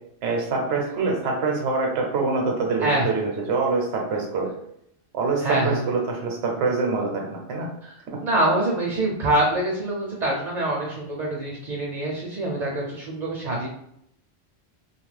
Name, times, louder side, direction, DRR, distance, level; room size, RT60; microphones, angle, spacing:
voice 1, 0.2-4.5 5.1-7.7, right 4 dB, 70° right, 1 dB, 0.9 m, -25 dB
voice 2, 5.4-5.9 7.8-13.7, right 1 dB, 50° right, -2 dB, 0.6 m, -25 dB
2.7 x 2.4 x 3.2 m, 0.73 s
omnidirectional pair, 1.1 m